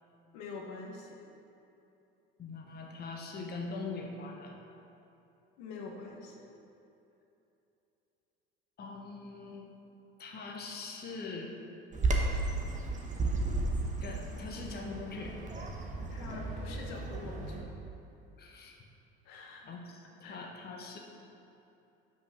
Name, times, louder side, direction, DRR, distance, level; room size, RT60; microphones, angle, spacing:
voice 1, 0.3-1.2 5.6-6.4 16.1-17.6 19.2-19.7 20.2-20.4, left 4 dB, 65° left, 0 dB, 1.1 m, -45 dB
voice 2, 2.4-4.6 8.8-9.7 10.2-11.5 14.0-15.4 18.4-18.8 19.6-21.0, left 3 dB, 35° left, 1 dB, 1.0 m, -42 dB
Bird vocalization bird call bird song, 11.9-17.6, right 2 dB, 25° right, 1.1 m, -34 dB
5.9 x 5.3 x 5.7 m, 2.8 s
hypercardioid pair, 70°, 30 cm